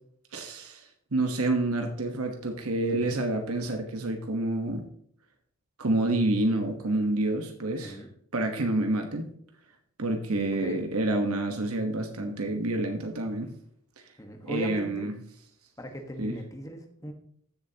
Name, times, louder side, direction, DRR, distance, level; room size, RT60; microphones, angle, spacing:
voice 1, 0.3-0.8 1.1-4.8 5.8-8.0 8.3-9.2 10.0-13.5 14.5-15.1 16.2-16.4, right 2 dB, 80° right, 4 dB, 1.2 m, -28 dB
voice 2, 2.9-3.2 7.8-8.1 10.6-10.8 14.2-15.1 15.8-17.1, equal, 15° left, 4 dB, 1.3 m, -39 dB
14.5 x 7.0 x 2.9 m, 0.65 s
head